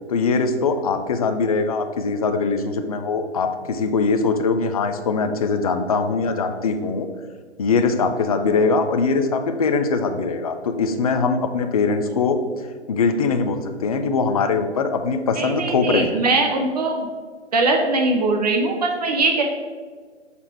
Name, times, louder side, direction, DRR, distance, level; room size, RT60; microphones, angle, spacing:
voice 1, 0.1-7.1 7.6-12.4 12.9-16.2, left 4 dB, 35° left, 7 dB, 0.4 m, -22 dB
voice 2, 15.4-17.1 17.5-19.4, right 3 dB, 35° right, 3 dB, 0.6 m, -21 dB
6.1 x 4.1 x 4.3 m, 1.5 s
hypercardioid pair, 140°, 35 cm